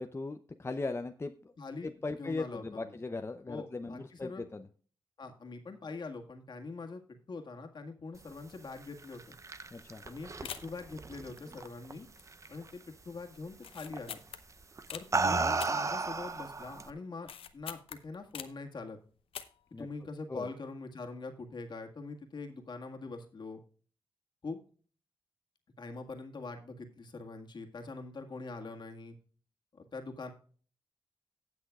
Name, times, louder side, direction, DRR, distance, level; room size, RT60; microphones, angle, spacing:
voice 1, 0.0-1.5 1.8-4.7 9.7-10.0 19.7-19.9 20.3-20.5, left 3 dB, 30° left, 7 dB, 0.6 m, -38 dB
voice 2, 1.6-1.9 2.2-2.9 3.5-4.4 5.2-7.0 7.3-9.2 10.0-12.1 12.5-14.2 14.9-19.0 19.7-23.6 24.4-24.6 25.8-29.2 29.7-30.3, left 3 dB, 55° left, 3 dB, 1.8 m, -43 dB
sound 1, 9.0-11.9 12.3-12.7 13.9-14.2 14.8-16.9, right 3 dB, 35° right, 0.6 m, -33 dB
sound 2, 10.4-10.9 11.4-11.8 12.2-12.6 12.8-12.9 13.6-15.1 15.6-16.5 16.8-18.7 19.2-19.7 20.0-20.1, left 8 dB, 85° left, 0.7 m, -45 dB
18.0 x 6.2 x 2.4 m, 0.42 s
cardioid pair, 60°, 9 cm